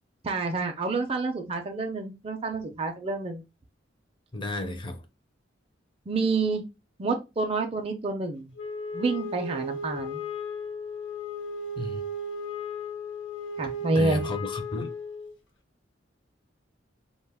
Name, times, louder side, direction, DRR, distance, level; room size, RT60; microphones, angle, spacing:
voice 1, 0.2-3.4 6.1-6.6 7.0-8.5 8.9-10.2 13.6-14.2, right 3 dB, 30° right, 0.4 m, -28 dB
voice 2, 4.3-5.0 11.8-12.0 13.9-14.9, left 2 dB, 25° left, 0.5 m, -33 dB
Wind instrument woodwind instrument, 8.6-15.4, left 1 dB, 75° left, 0.6 m, -35 dB
2.4 x 2.2 x 3.4 m
head